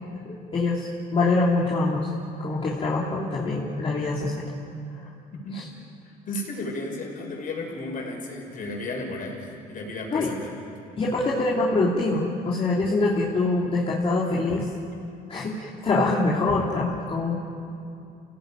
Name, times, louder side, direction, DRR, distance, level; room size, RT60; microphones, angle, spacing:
voice 1, 0.2-2.1 2.4-4.5 5.5-5.7 10.1-10.3 11.0-14.7 15.3-17.3, left 3 dB, 35° left, -5 dB, 3.2 m, -24 dB
voice 2, 6.0-10.6, left 2 dB, 55° left, 0 dB, 6.1 m, -34 dB
27.5 x 17.5 x 9.2 m, 2.6 s
cardioid pair, 110°, 17 cm